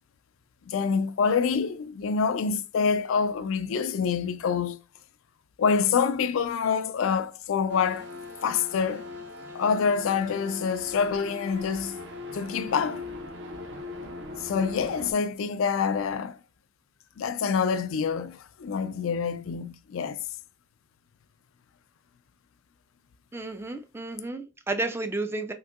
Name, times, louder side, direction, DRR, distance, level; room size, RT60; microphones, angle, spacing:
voice 1, 0.7-4.8 5.6-8.1 8.4-9.1 9.5-12.0 12.3-13.0 14.4-16.4 17.2-20.2, left 6 dB, 80° left, 0.4 m, -26 dB
sound 1, 7.7-15.1, left 2 dB, 65° right, 0.7 m, -40 dB
voice 2, 23.3-25.5, right 2 dB, 10° right, 0.3 m, -32 dB
3.7 x 2.6 x 2.3 m
head